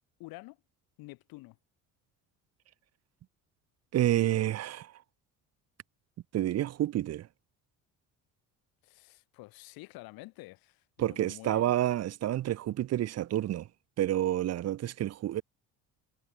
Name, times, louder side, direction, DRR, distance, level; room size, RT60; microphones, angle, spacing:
voice 1, 0.2-0.6 1.0-1.6 8.8-11.7, left 22 dB, 85° left, 2.5 m, -48 dB
voice 2, 3.9-4.9 6.3-7.3 11.0-13.7 14.0-15.4, right 13 dB, 45° right, 0.7 m, -29 dB
cardioid pair, 120°, 35 cm